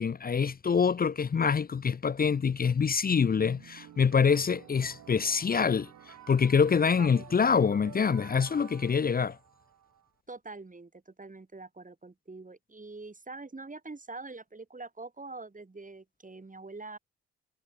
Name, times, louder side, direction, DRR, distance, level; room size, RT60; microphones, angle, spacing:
voice 1, 0.0-5.9 6.3-9.4, left 6 dB, 30° left, 0.7 m, -25 dB
sound 1, 3.1-10.1, right 11 dB, 65° right, 2.1 m, -51 dB
voice 2, 7.0-7.3 10.3-17.0, right 3 dB, 25° right, 4.4 m, -44 dB
hypercardioid pair, 40°, 31 cm